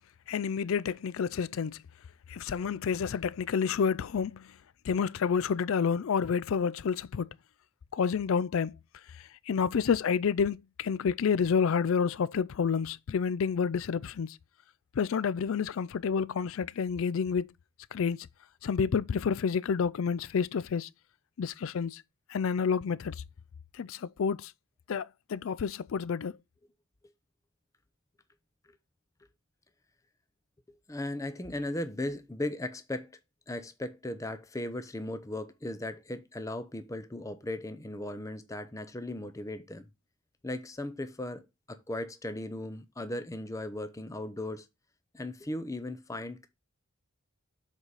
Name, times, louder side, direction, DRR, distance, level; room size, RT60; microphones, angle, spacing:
voice 1, 0.3-1.8 2.3-4.5 4.8-7.3 7.9-8.8 9.1-14.4 14.9-17.5 17.9-18.3 18.6-20.9 21.4-22.0 22.3-23.2 23.7-24.5 24.9-26.4, left 6 dB, 65° left, 0.4 m, -29 dB
voice 2, 30.9-33.1 33.5-39.9 40.4-44.7 45.1-46.5, left 1 dB, 15° left, 0.5 m, -37 dB
7.5 x 4.0 x 4.8 m
head